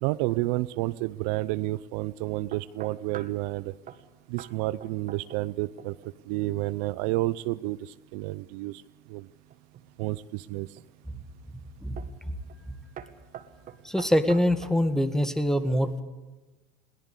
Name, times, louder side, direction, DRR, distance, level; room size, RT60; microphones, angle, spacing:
voice 1, 0.0-3.7 4.3-5.9 6.3-8.8 9.1-9.3 10.0-10.7, right 19 dB, 65° right, 16 dB, 0.7 m, -30 dB
sound 1, 2.5-3.4 3.9-4.1 4.4-4.5 4.8-5.5 5.8-6.1 9.5-10.2 10.8-11.2 12.0-12.2 12.5-12.7 13.0-14.8, right 9 dB, 40° right, 1.8 m, -44 dB
voice 2, 13.8-16.0, equal, ahead, 10 dB, 1.9 m, -24 dB
21.5 x 18.0 x 8.4 m, 1.2 s
hypercardioid pair, 85°, 21 cm